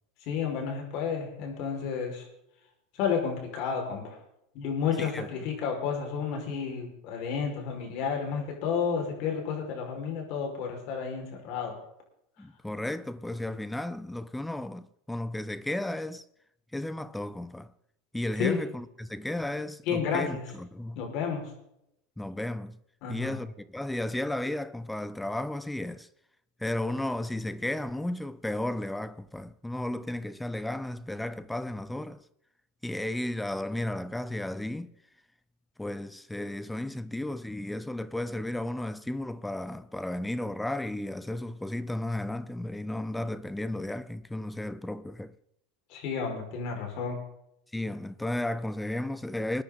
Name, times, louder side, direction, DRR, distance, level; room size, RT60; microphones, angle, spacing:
voice 1, 0.2-2.3 3.0-4.2 4.5-11.7 18.4-18.6 19.9-20.4 21.0-21.5 23.0-23.4 45.9-47.2, left 6 dB, 55° left, 5.3 m, -31 dB
voice 2, 12.4-16.2 16.7-17.7 18.1-21.0 22.2-22.8 23.1-26.1 26.6-32.2 32.8-34.9 35.8-45.3 47.7-49.6, left 1 dB, 5° left, 0.6 m, -34 dB
21.5 x 10.0 x 4.0 m
hypercardioid pair, 110°, 0 cm